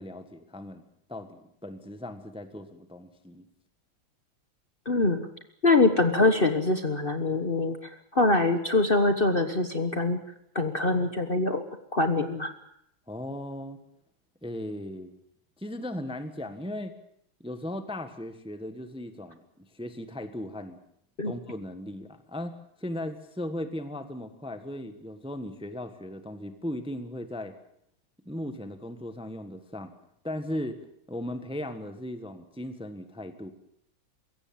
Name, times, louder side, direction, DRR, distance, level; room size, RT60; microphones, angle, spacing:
voice 1, 0.0-3.5 13.1-13.8 14.4-15.2 15.6-16.9 17.4-20.8 21.2-27.5 28.2-29.9 30.2-30.8 31.1-33.5, left 1 dB, 5° right, 9 dB, 1.2 m, -37 dB
voice 2, 4.8-5.3 5.6-10.2 10.5-11.6 11.9-12.5 21.2-21.3, left 2 dB, 30° left, 8 dB, 1.3 m, -24 dB
22.5 x 16.5 x 8.7 m, 0.74 s
omnidirectional pair, 2.1 m